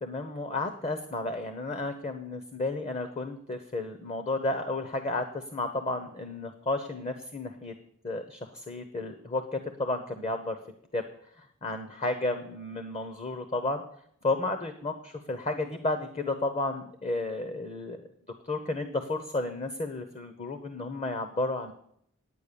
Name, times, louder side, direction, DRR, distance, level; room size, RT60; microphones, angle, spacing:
voice 1, 0.0-7.7 8.0-10.6 10.9-11.0 11.4-13.8 14.2-14.9 15.3-18.0 18.4-21.7, left 2 dB, 35° left, 8 dB, 0.9 m, -32 dB
10.0 x 9.0 x 6.9 m, 0.67 s
head